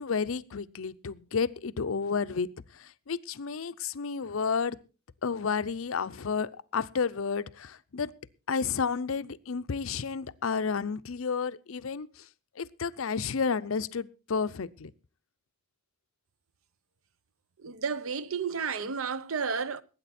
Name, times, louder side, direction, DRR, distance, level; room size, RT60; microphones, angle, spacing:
voice 1, 0.0-4.8 5.2-8.1 8.5-12.3 12.6-14.9, left 5 dB, 70° left, 0.6 m, -31 dB
voice 2, 17.6-19.8, right 5 dB, 75° right, 0.7 m, -32 dB
20.0 x 9.0 x 4.2 m
head